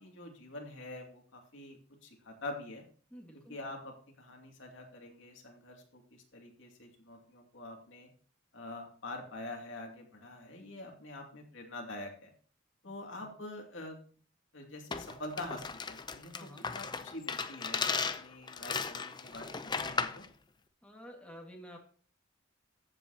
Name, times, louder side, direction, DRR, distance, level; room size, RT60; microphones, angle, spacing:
voice 1, 0.0-2.8 3.5-8.1 8.5-12.3 12.8-14.0 14.5-20.2, left 2 dB, 75° left, 1 dB, 2.5 m, -45 dB
voice 2, 3.1-3.6 12.8-12.9 13.2-13.3 16.3-16.7 20.8-21.8, equal, 5° left, 0 dB, 1.8 m, -50 dB
sound 1, 14.9-20.3, left 5 dB, 20° left, 0.6 m, -36 dB
14.5 x 7.9 x 2.9 m, 0.43 s
head